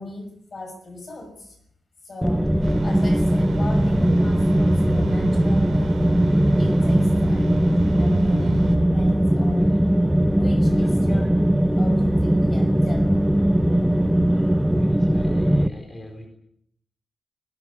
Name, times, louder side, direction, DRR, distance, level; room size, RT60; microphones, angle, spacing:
voice 1, 0.0-1.6 2.0-6.1 6.6-7.5 8.0-9.8 10.3-11.3 11.8-13.2, left 3 dB, 40° left, 6 dB, 6.3 m, -38 dB
sound 1, 2.2-15.7, right 1 dB, 5° right, 0.8 m, -19 dB
sound 2, 2.6-8.8, right 5 dB, 90° right, 3.9 m, -33 dB
voice 2, 10.6-11.3 13.7-14.0 14.3-16.3, equal, 20° left, 3 dB, 4.2 m, -42 dB
20.5 x 18.5 x 9.7 m, 0.72 s
wide cardioid pair, 175°, 0 cm